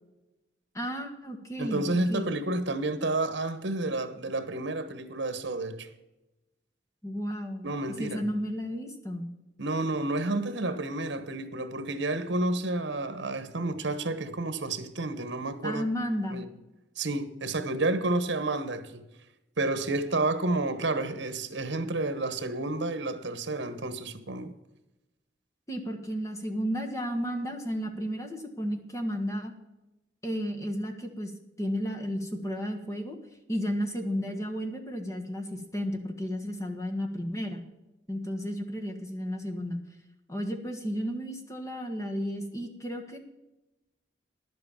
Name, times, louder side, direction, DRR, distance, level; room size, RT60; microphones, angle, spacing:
voice 1, 0.7-2.4 7.0-7.7 8.0-9.3 15.6-16.4 25.7-29.5 30.2-31.3 31.6-33.2 33.5-37.6 38.1-39.8 40.3-43.2, equal, 15° left, 1.4 m, -33 dB
voice 2, 1.6-5.9 7.6-8.3 9.6-15.8 16.3-16.5 17.0-19.1 19.6-24.5, right 2 dB, 75° right, 1.1 m, -30 dB
11.0 x 7.8 x 7.3 m
head